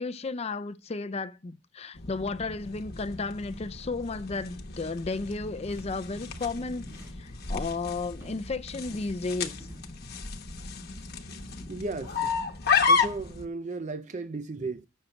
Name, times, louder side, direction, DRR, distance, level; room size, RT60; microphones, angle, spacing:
voice 1, 0.0-6.9 7.2-9.7, left 3 dB, 30° left, 0.5 m, -33 dB
sound 1, 1.9-13.4, left 5 dB, 50° left, 1.1 m, -32 dB
sound 2, 5.6-8.5 8.8-9.9, equal, 15° right, 4.0 m, -52 dB
voice 2, 11.6-12.3 12.9-14.9, right 3 dB, 40° right, 0.5 m, -35 dB
7.2 x 6.5 x 7.7 m
head